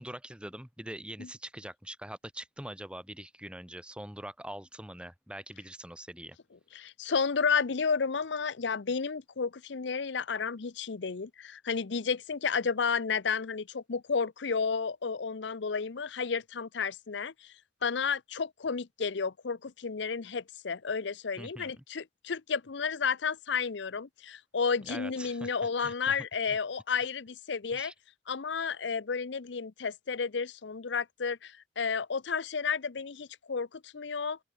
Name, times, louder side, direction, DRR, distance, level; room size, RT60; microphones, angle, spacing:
voice 1, 0.0-6.4 21.4-21.8 24.8-25.5 25.8-26.1 26.5-26.6 27.7-27.9, right 1 dB, 5° right, 1.9 m, -43 dB
voice 2, 6.7-17.3 17.8-27.9 28.3-34.4, left 5 dB, 70° left, 0.7 m, -32 dB
open air
head